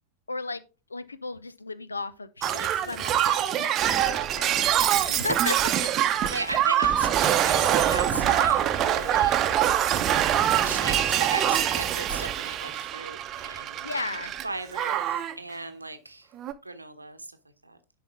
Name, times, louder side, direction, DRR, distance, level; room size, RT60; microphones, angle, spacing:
voice 1, 0.3-0.6 0.9-5.6 13.8-14.3, left 3 dB, 80° left, 0.6 m, -35 dB
Shatter, 2.4-14.5 14.7-15.3 16.4-16.5, right 11 dB, 30° right, 0.8 m, -24 dB
voice 2, 6.3-9.4 10.6-13.8 14.4-16.3 16.6-17.4 17.6-17.8, right 2 dB, 85° right, 1.0 m, -36 dB
10.5 x 4.2 x 3.5 m
figure-of-eight pair, 90°, 0 cm